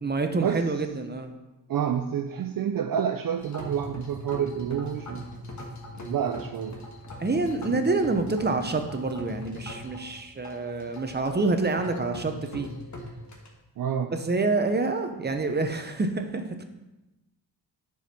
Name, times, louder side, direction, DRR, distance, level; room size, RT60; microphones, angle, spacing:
voice 1, 0.0-1.3 7.2-12.7 14.1-16.6, right 3 dB, 25° right, 6 dB, 0.8 m, -27 dB
voice 2, 1.7-5.2 5.9-6.8 13.8-14.1, right 8 dB, 50° right, 6 dB, 0.5 m, -28 dB
sound 1, 3.4-13.5, left 1 dB, 40° left, 1.5 m, -41 dB
10.5 x 4.7 x 4.3 m, 1.0 s
cardioid pair, 100°, 44 cm